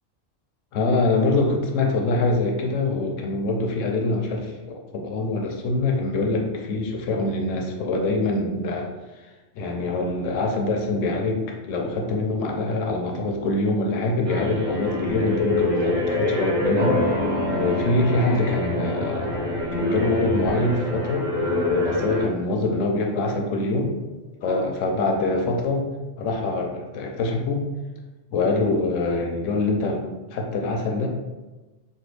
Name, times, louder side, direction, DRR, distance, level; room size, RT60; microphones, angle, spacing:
voice 1, 0.7-8.9 9.6-17.0 17.4-19.4 19.8-21.3 21.7-23.9 24.4-25.9 26.2-27.6 28.3-30.0 30.3-31.1, left 2 dB, 75° left, 1 dB, 0.9 m, -24 dB
sound 1, 14.2-22.2, left 2 dB, 20° right, 1.4 m, -26 dB
sound 2, 16.8-23.8 24.1-24.2, left 1 dB, 75° right, 1.0 m, -32 dB
3.2 x 2.2 x 3.2 m, 1.1 s
omnidirectional pair, 1.3 m